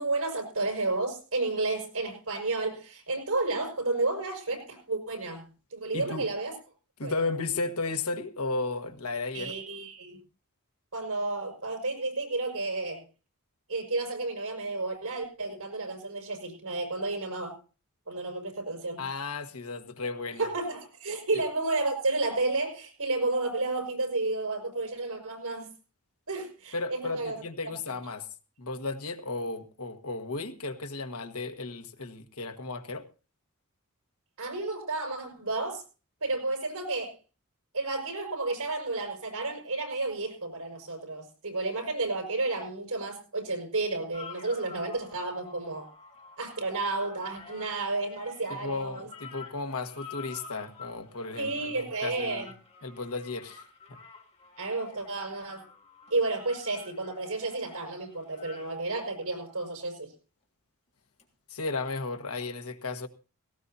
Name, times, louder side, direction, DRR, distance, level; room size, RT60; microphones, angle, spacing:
voice 1, 0.0-5.5 5.7-6.6 7.0-7.1 9.3-10.2 10.9-13.0 13.7-17.6 18.1-19.0 20.4-25.7 26.3-27.4 34.4-35.8 36.2-37.1 37.7-45.9 46.4-49.1 51.3-52.5 54.6-55.7 56.1-60.1, right 2 dB, 75° right, 4 dB, 5.7 m, -31 dB
voice 2, 5.9-6.3 7.0-9.6 19.0-20.5 26.7-28.3 28.6-33.0 48.5-52.5 52.8-54.0 61.5-63.1, left 3 dB, 75° left, 6 dB, 1.5 m, -34 dB
sound 1, 44.1-59.7 61.2-61.3, left 5 dB, 30° left, 2.9 m, -50 dB
17.5 x 17.5 x 2.7 m, 0.34 s
head